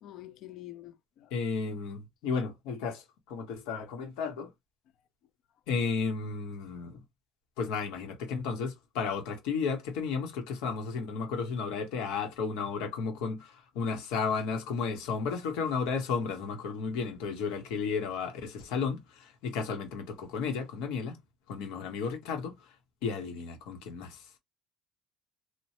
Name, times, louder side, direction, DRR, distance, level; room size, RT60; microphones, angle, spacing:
voice 1, 0.0-1.3, left 14 dB, 50° left, 0.4 m, -47 dB
voice 2, 1.3-4.5 5.7-7.0 7.6-21.2 21.5-22.5 23.0-24.2, left 5 dB, 90° left, 1.1 m, -33 dB
3.0 x 2.1 x 2.9 m
cardioid pair, 170°, 0 cm